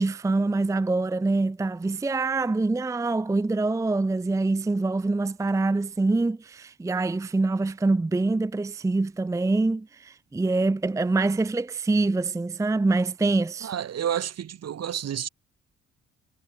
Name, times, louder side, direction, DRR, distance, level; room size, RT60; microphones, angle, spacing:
voice 1, 0.0-13.7, right 3 dB, 10° right, 0.5 m, -25 dB
voice 2, 13.6-15.3, right 9 dB, 55° right, 2.3 m, -30 dB
cardioid pair, 90°, 30 cm